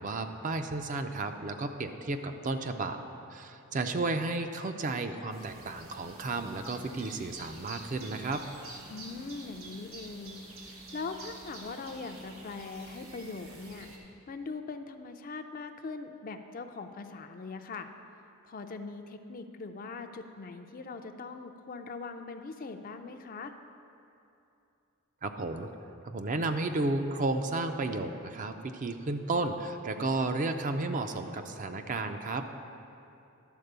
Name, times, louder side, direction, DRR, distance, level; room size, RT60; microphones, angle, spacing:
voice 1, 0.0-3.0 3.3-8.4 25.2-25.7 26.0-32.4, right 2 dB, 40° right, 7 dB, 0.4 m, -33 dB
sound 1, 5.3-14.0, right 2 dB, 85° right, 1.3 m, -48 dB
voice 2, 8.9-10.4 10.7-13.9 14.3-17.9 18.5-23.5, left 4 dB, 40° left, 7 dB, 0.4 m, -41 dB
11.5 x 4.3 x 6.7 m, 2.7 s
head